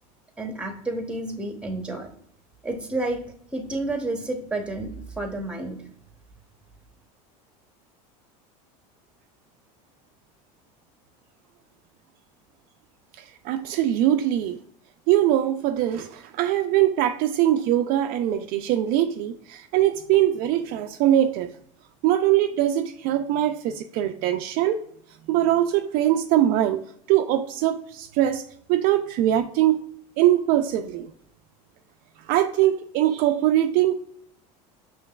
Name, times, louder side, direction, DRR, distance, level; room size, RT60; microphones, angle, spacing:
voice 1, 0.4-2.1 2.6-3.2 3.5-5.8, right 2 dB, 5° right, 5 dB, 0.8 m, -30 dB
voice 2, 13.4-14.6 15.1-21.5 22.0-24.8 25.3-29.8 30.2-31.1 32.3-33.9, right 12 dB, 55° right, 7 dB, 0.4 m, -22 dB
5.4 x 3.2 x 2.3 m, 0.64 s
supercardioid pair, 115°, 18 cm